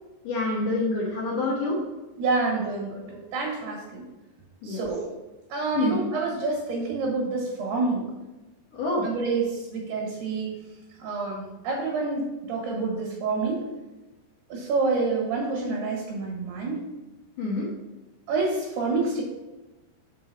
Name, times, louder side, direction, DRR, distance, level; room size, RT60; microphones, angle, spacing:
voice 1, 0.2-1.8 4.6-4.9 5.7-6.0 8.7-9.0 17.4-17.7, left 2 dB, 80° left, -4 dB, 1.8 m, -27 dB
voice 2, 2.2-4.0 4.6-5.0 5.5-8.1 9.0-10.5 11.0-13.6 14.5-16.8 18.3-19.2, right 3 dB, 65° right, -2 dB, 3.3 m, -28 dB
6.2 x 5.3 x 5.7 m, 1.1 s
omnidirectional pair, 5.4 m